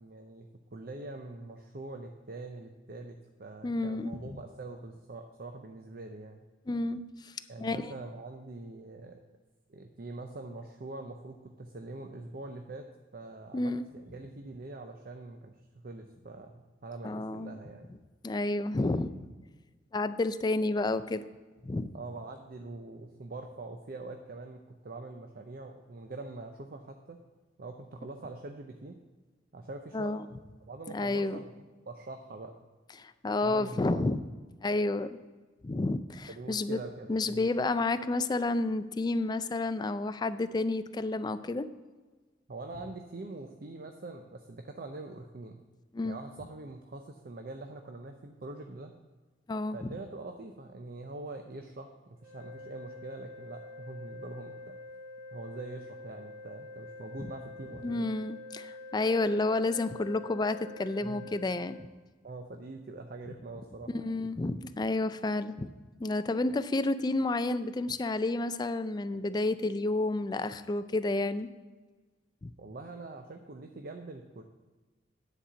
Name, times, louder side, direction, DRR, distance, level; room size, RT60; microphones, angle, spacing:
voice 1, 0.0-6.4 7.5-9.2 9.7-12.9 13.1-17.9 21.9-27.2 27.6-29.0 29.5-30.2 30.6-31.5 31.9-32.5 33.4-34.0 36.3-37.5 42.5-45.6 46.0-48.9 49.7-54.8 55.3-58.1 61.0-61.3 62.2-64.2 72.6-74.4, right 2 dB, 50° right, 5 dB, 0.6 m, -44 dB
voice 2, 3.6-4.4 6.7-7.3 7.6-7.9 13.5-13.9 17.0-17.6 18.2-19.1 19.9-21.2 21.6-21.9 29.9-30.3 30.9-31.4 33.0-34.2 34.6-35.2 35.6-36.8 37.1-41.7 45.9-46.2 49.5-49.9 57.2-57.3 57.8-61.8 63.9-65.7 66.0-71.5 72.4-72.5, left 2 dB, 20° left, 12 dB, 0.3 m, -30 dB
sound 1, 52.2-61.9, left 2 dB, 15° right, 2.3 m, -47 dB
9.9 x 4.3 x 7.4 m, 1.3 s
head